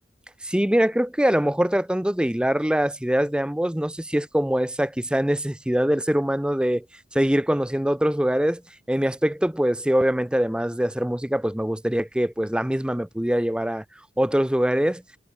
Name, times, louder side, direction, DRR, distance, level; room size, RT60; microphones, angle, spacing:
voice 1, 0.4-6.9 7.1-8.6 8.9-13.8 14.2-15.0, equal, 5° right, 0.6 m, -23 dB
head